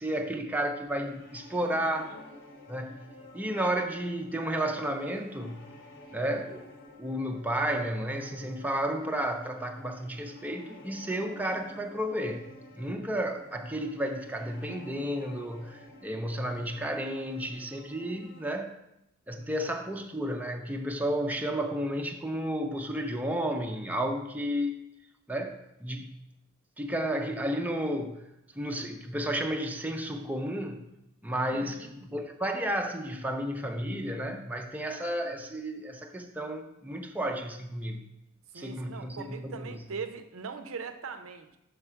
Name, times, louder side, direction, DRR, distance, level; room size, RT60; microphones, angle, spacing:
voice 1, 0.0-2.1 2.7-3.1 3.3-5.6 6.1-6.7 7.0-12.5 12.8-18.7 19.3-24.8 25.3-26.1 26.8-28.3 28.5-30.9 31.2-38.0 38.5-39.8, right 1 dB, 10° right, 3 dB, 0.5 m, -32 dB
sound 1, 0.9-18.5, left 1 dB, 60° left, 1.1 m, -51 dB
voice 2, 1.6-2.2 19.4-19.5 31.5-31.9 38.5-41.6, right 5 dB, 75° right, 8 dB, 0.6 m, -41 dB
5.9 x 3.9 x 5.6 m, 0.87 s
head